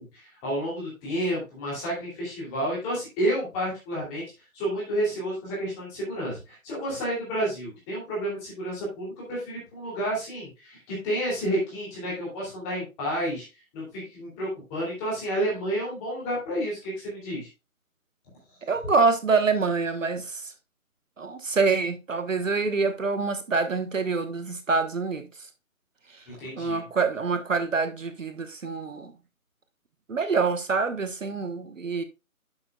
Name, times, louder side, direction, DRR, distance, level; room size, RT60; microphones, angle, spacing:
voice 1, 0.0-4.2 4.5-13.4 13.7-17.5 26.3-26.8, right 1 dB, 10° left, 2.7 m, -30 dB
voice 2, 18.6-20.4 21.2-25.2 26.6-29.1 30.1-32.0, right 4 dB, 60° right, 1.2 m, -26 dB
11.5 x 6.6 x 2.3 m
figure-of-eight pair, 170°, 43 cm